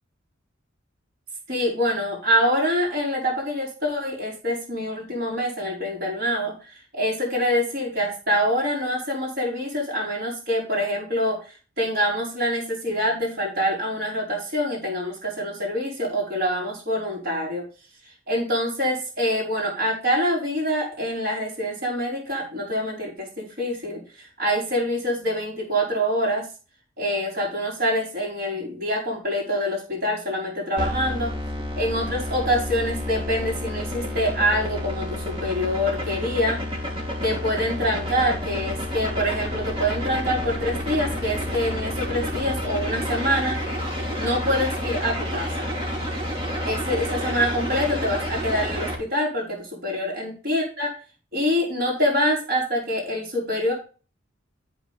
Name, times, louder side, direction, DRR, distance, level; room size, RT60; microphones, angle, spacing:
voice 1, 1.5-17.6 18.3-26.5 27.0-31.3 31.8-36.6 37.2-43.6 44.2-45.7 46.6-50.9 51.3-53.7, equal, 50° right, -3 dB, 4.9 m, -25 dB
sound 1, 30.8-48.9, left 1 dB, 25° right, 3.2 m, -29 dB
13.5 x 6.2 x 3.5 m, 0.35 s
head